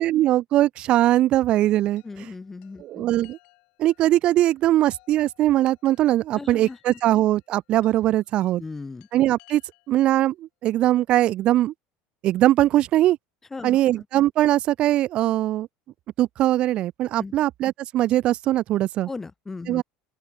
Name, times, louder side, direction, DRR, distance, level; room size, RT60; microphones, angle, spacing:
voice 1, 0.0-2.3 2.8-3.4 3.8-8.6 9.1-9.6 9.9-11.7 12.2-13.2 13.6-15.7 16.2-19.1 19.7-19.8, right 14 dB, 45° right, 0.4 m, -21 dB
Chime, 2.0-10.1, left 30 dB, 70° left, 5.2 m, -59 dB
voice 2, 2.0-3.0 6.3-6.8 8.6-9.1 13.5-13.8 17.2-17.3 19.1-19.8, left 3 dB, 15° left, 0.5 m, -36 dB
open air
supercardioid pair, 125°, 2 cm